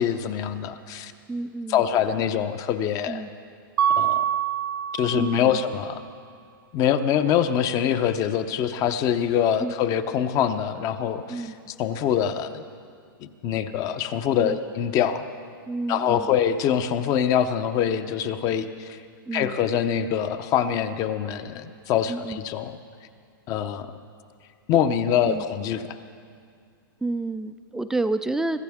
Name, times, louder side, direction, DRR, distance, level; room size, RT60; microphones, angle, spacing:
voice 1, 0.0-1.1 1.7-3.2 4.0-4.3 5.0-6.0 6.7-11.5 11.8-12.6 13.2-15.3 15.9-19.0 19.3-22.8 23.5-23.9 24.7-26.0, left 9 dB, 30° left, 11 dB, 0.7 m, -24 dB
voice 2, 1.3-1.9 3.1-3.3 5.1-5.6 9.6-9.7 11.3-11.5 14.4-14.6 15.7-16.3 19.3-19.6 22.1-22.4 25.2-25.4 27.0-28.6, right 2 dB, 5° right, 10 dB, 0.4 m, -29 dB
Mallet percussion, 3.8-5.6, right 9 dB, 70° right, 0.6 m, -25 dB
24.0 x 14.5 x 3.6 m, 2.2 s
hypercardioid pair, 145°, 12 cm